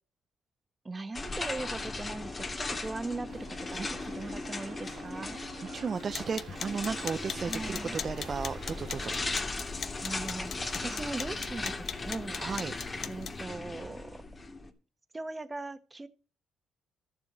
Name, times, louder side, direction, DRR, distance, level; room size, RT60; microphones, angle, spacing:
voice 1, 0.8-5.4 7.4-8.0 10.0-10.5 10.8-12.4 13.1-14.2 15.1-16.1, right 3 dB, 20° right, 10 dB, 1.4 m, -39 dB
sound 1, 1.1-14.7, left 3 dB, 30° left, 2.5 m, -37 dB
sound 2, 3.3-9.3, right 8 dB, 85° right, 2.0 m, -50 dB
voice 2, 5.7-9.1 12.4-12.8, right 5 dB, 40° right, 10 dB, 0.6 m, -34 dB
sound 3, 5.9-13.4, left 7 dB, 60° left, 1.0 m, -41 dB
14.5 x 7.1 x 6.2 m, 0.34 s
cardioid pair, 90°, 0 cm